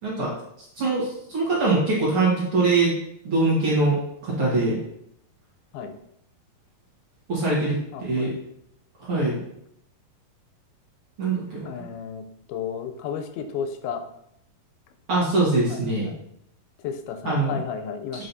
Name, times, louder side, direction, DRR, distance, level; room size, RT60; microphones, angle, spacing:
voice 1, 0.0-0.3 0.8-3.0 3.2-4.8 7.3-8.3 9.0-9.4 11.2-11.7 15.1-16.1 17.3-17.6 18.1-18.3, right 3 dB, 50° right, -6 dB, 2.0 m, -23 dB
voice 2, 7.9-8.3 11.6-12.2 12.5-14.0 15.7-16.2 16.8-18.3, left 7 dB, 90° left, 7 dB, 2.6 m, -33 dB
7.6 x 5.3 x 2.7 m, 0.75 s
omnidirectional pair, 4.2 m